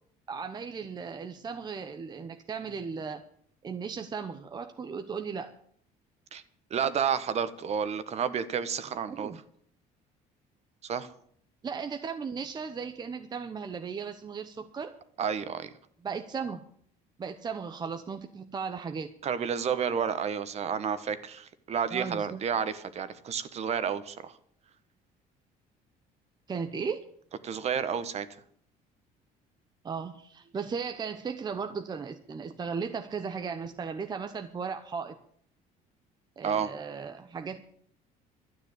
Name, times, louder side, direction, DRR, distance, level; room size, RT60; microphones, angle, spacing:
voice 1, 0.3-3.2 3.6-5.5 9.1-9.4 11.6-15.0 16.0-16.6 17.2-19.1 21.9-22.4 26.5-27.1 29.8-35.2 36.4-37.6, right 5 dB, 25° right, 7 dB, 0.9 m, -36 dB
voice 2, 6.7-9.3 10.8-11.1 15.2-15.7 19.2-24.3 27.4-28.3 36.4-36.7, right 7 dB, 40° right, 12 dB, 1.2 m, -30 dB
12.5 x 9.6 x 8.1 m, 0.63 s
cardioid pair, 135°, 16 cm